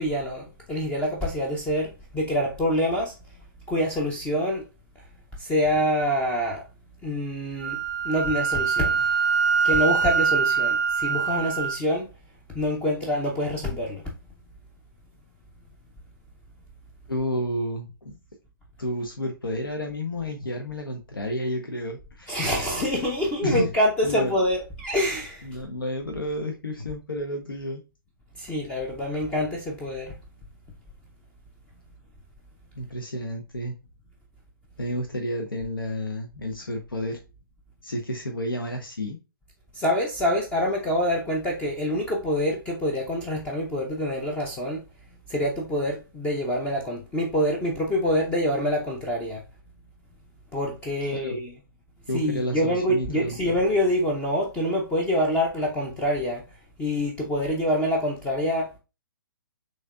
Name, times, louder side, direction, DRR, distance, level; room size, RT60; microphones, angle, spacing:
voice 1, 0.0-4.6 5.4-6.6 7.0-7.8 8.0-9.1 9.6-12.1 12.5-14.0 22.3-25.6 28.4-30.2 39.7-44.8 45.3-49.4 50.5-51.5 52.1-56.4 56.8-58.8, equal, 10° left, 0.5 m, -26 dB
Wind instrument woodwind instrument, 7.6-11.8, right 6 dB, 55° right, 0.5 m, -24 dB
voice 2, 17.1-18.2 18.8-22.4 23.4-23.7 24.0-24.3 25.4-27.8 32.8-33.8 34.8-37.2 37.8-39.2 51.1-51.4 52.1-53.4, left 1 dB, 70° left, 0.8 m, -30 dB
6.2 x 2.8 x 2.3 m
figure-of-eight pair, 130°, 12 cm